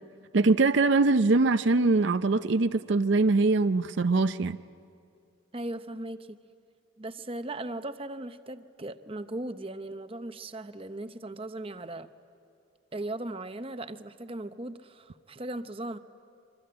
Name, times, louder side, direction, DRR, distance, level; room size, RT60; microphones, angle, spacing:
voice 1, 0.3-4.6, right 3 dB, 60° right, 10 dB, 0.5 m, -23 dB
voice 2, 5.5-6.4 7.0-12.1 12.9-16.0, right 1 dB, 25° right, 10 dB, 0.7 m, -38 dB
25.5 x 24.0 x 8.7 m, 2.5 s
head